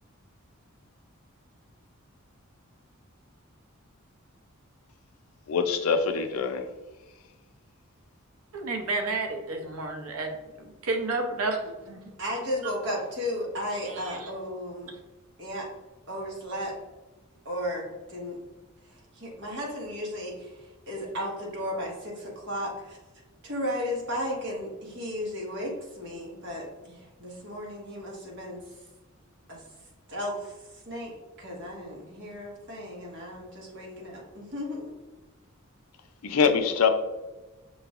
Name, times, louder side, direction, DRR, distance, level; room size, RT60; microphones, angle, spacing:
voice 1, 5.5-6.7 36.2-36.9, left 5 dB, 80° left, 0.5 m, -24 dB
voice 2, 8.5-12.0 14.0-14.2, right 3 dB, 85° right, 0.7 m, -31 dB
voice 3, 12.2-14.9 15.4-15.7 16.1-16.7 17.4-18.4 18.8-23.0 23.4-28.6 29.5-29.6 30.1-34.9, equal, 60° right, 1.3 m, -34 dB
5.8 x 3.1 x 2.4 m
head